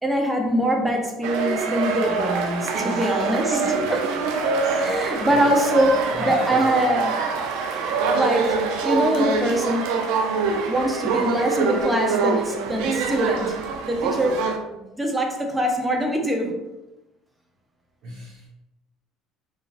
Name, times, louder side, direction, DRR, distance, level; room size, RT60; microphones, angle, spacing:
voice 1, 0.0-3.5 4.8-7.2 7.8-8.6 8.8-9.9 10.7-13.6 13.9-16.6, equal, 10° right, 2 dB, 0.5 m, -23 dB
sound 1, 1.2-14.6, right 4 dB, 80° right, 0.4 m, -25 dB
voice 2, 2.7-3.9 4.6-6.7 11.2-11.3 18.0-18.5, right 1 dB, 65° right, -5 dB, 0.9 m, -32 dB
3.0 x 2.3 x 2.4 m, 0.98 s
supercardioid pair, 105°, 0 cm